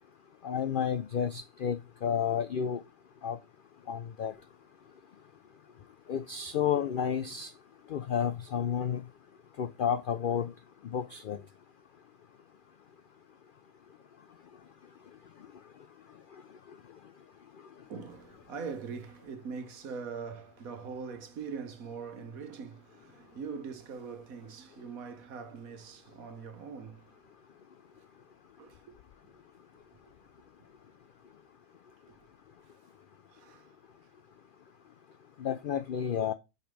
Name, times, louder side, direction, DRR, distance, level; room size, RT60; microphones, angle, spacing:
voice 1, 0.4-2.8 3.2-3.4 3.9-4.3 6.1-7.5 7.9-9.0 9.6-10.5 10.8-11.4 35.4-36.3, left 8 dB, 80° left, 0.4 m, -31 dB
voice 2, 17.8-27.1 28.6-28.8 33.3-33.7, right 5 dB, 80° right, 1.5 m, -42 dB
5.3 x 5.2 x 6.1 m
omnidirectional pair, 1.5 m